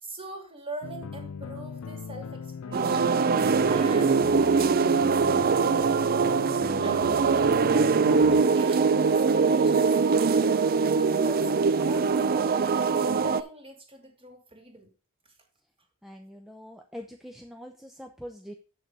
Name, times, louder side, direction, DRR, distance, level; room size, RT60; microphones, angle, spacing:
voice 1, 0.0-3.2 3.7-4.6 6.8-14.9, right 2 dB, 25° right, 3 dB, 2.5 m, -43 dB
sound 1, 0.8-8.4, left 6 dB, 70° left, 0.4 m, -39 dB
sound 2, 2.7-13.4, right 5 dB, 45° right, 0.4 m, -22 dB
voice 2, 16.0-18.5, equal, ahead, 3 dB, 0.7 m, -43 dB
8.2 x 6.4 x 4.8 m, 0.36 s
head